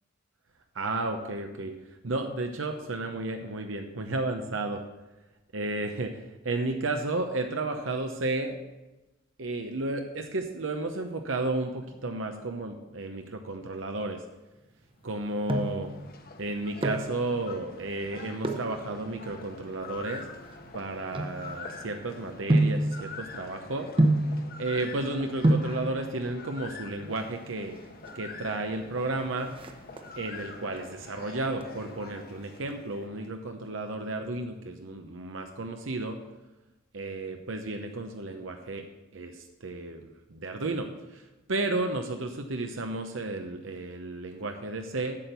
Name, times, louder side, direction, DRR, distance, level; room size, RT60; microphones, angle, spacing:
voice 1, 0.7-1.7 2.0-4.8 5.5-8.6 9.4-14.2 15.0-15.9 16.4-20.3 20.7-23.9 24.6-27.8 28.1-29.5 30.2-36.2 36.9-38.8 39.1-41.2 41.5-45.2, right 2 dB, 75° right, 5 dB, 0.9 m, -33 dB
sound 1, 15.0-33.4, left 3 dB, 50° left, 1.1 m, -45 dB
sound 2, 15.1-15.9 16.6-17.2 18.4-18.8 19.5-21.9 22.5-22.9 24.0-24.4 25.1-25.2 25.4-25.8 26.9-27.5 27.8-27.9 28.1-28.2 28.6-29.0 29.3-30.3 30.8-31.2 31.6-32.7 33.0-33.1, right 1 dB, 25° right, 0.9 m, -27 dB
8.6 x 7.8 x 6.8 m, 1.1 s
head